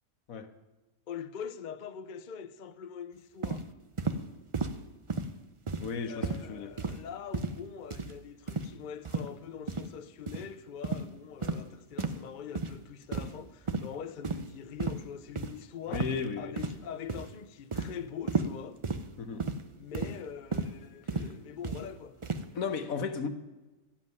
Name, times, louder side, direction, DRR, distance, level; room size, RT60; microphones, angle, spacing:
voice 1, 1.1-3.7 6.1-16.1 16.4-18.8 19.7-22.2, left 8 dB, 55° left, 0.5 m, -43 dB
sound 1, 3.4-3.6 4.0-4.2 4.5-4.8 5.1-5.3 5.7-5.9 6.2-6.4 6.8-7.0 7.3-7.6 7.9-8.1 8.5-8.7 9.0-9.3 9.7-9.9 10.3-10.4 10.8-11.0 11.4-11.6 12.0-12.2 12.5-12.7 13.1-13.4 13.7-13.9 14.2-14.5 14.8-15.0 15.4-15.5 15.9-16.2 16.6-16.8 17.1-17.3 17.7-17.9 18.3-18.5 18.8-19.0 19.4-19.6 19.9-20.2 20.5-20.7 21.1-21.3 21.6-21.8 22.2-22.4, right 3 dB, 45° right, 0.4 m, -33 dB
voice 2, 5.8-6.7 15.9-16.6 19.2-19.5 22.5-23.3, left 5 dB, 70° left, 1.4 m, -34 dB
14.0 x 7.5 x 9.5 m
omnidirectional pair, 1.5 m